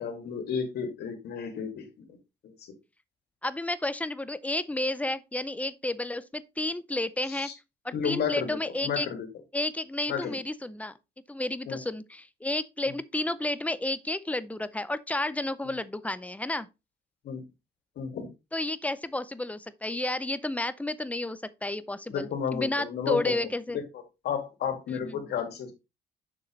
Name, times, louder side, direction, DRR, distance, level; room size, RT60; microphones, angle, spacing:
voice 1, 0.0-2.2 2.4-2.5 7.3-7.5 7.9-9.3 10.1-10.4 11.7-11.8 15.6-15.7 17.2-17.4 18.0-18.3 22.1-23.8 24.2-25.7, left 7 dB, 70° left, 2.3 m, -32 dB
voice 2, 3.4-7.5 7.8-9.1 9.5-10.9 11.3-16.7 18.5-23.8 24.9-25.3, left 2 dB, 10° left, 0.5 m, -31 dB
6.7 x 6.6 x 3.2 m
cardioid pair, 130°, 17 cm